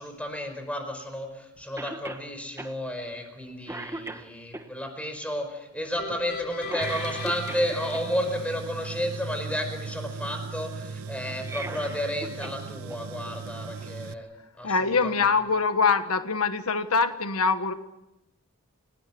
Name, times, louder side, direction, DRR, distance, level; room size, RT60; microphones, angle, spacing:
voice 1, 0.0-14.3 14.6-15.2, equal, 5° left, 6 dB, 5.0 m, -32 dB
Cough, 1.8-2.3 2.6-2.7 3.2-3.4 3.7-4.6 6.6-8.0 11.3-12.6 12.9-13.0 14.1-14.2, right 2 dB, 10° right, 1.5 m, -38 dB
sound 1, 6.0-9.2, left 4 dB, 50° left, 3.2 m, -40 dB
Tools, 6.8-14.1, right 5 dB, 75° right, 0.8 m, -38 dB
voice 2, 14.6-17.7, left 4 dB, 80° left, 9 dB, 1.3 m, -24 dB
29.5 x 18.5 x 7.7 m, 0.95 s
head